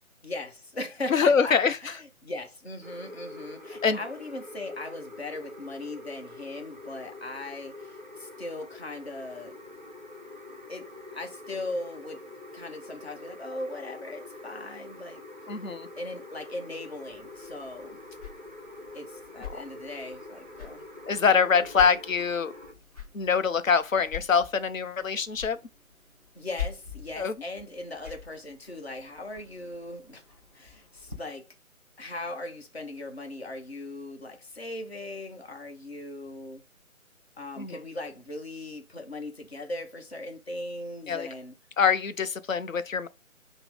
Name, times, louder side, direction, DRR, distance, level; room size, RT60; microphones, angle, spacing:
voice 1, 0.2-1.5 1.8-9.6 10.7-12.2 12.5-15.2 16.0-18.0 18.9-20.8 26.3-30.2 30.5-31.5 32.0-36.6 37.4-41.5, left 2 dB, 45° left, 0.9 m, -39 dB
voice 2, 1.1-1.8 3.8-4.0 15.5-15.9 19.4-19.5 21.1-22.5 23.1-25.6 27.2-27.3 37.6-37.8 41.1-41.3 41.8-43.1, left 6 dB, 70° left, 0.6 m, -24 dB
sound 1, 2.8-22.7, left 2 dB, 35° right, 0.4 m, -45 dB
sound 2, 17.1-31.2, left 8 dB, 25° left, 0.6 m, -45 dB
5.7 x 2.0 x 3.1 m
figure-of-eight pair, 155°, 42 cm